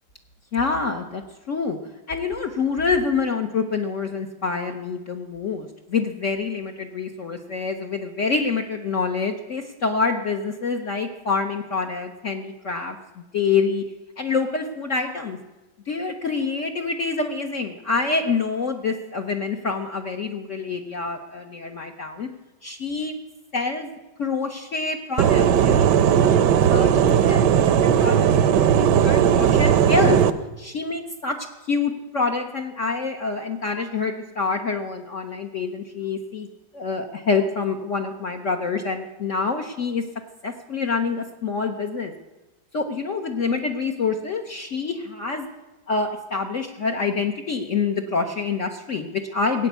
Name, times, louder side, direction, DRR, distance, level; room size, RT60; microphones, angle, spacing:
voice 1, 0.5-1.2 1.5-1.8 2.1-13.8 14.2-15.4 15.9-22.3 22.6-23.2 23.5-23.9 24.2-26.4 26.7-27.5 27.8-30.2 30.6-31.4 31.7-36.5 36.7-40.0 40.4-42.1 42.7-45.5 45.9-49.7, left 4 dB, 50° left, 3 dB, 1.1 m, -26 dB
sound 1, 25.2-30.3, right 8 dB, 70° right, 1.3 m, -17 dB
17.0 x 9.0 x 8.2 m, 1.1 s
omnidirectional pair, 2.0 m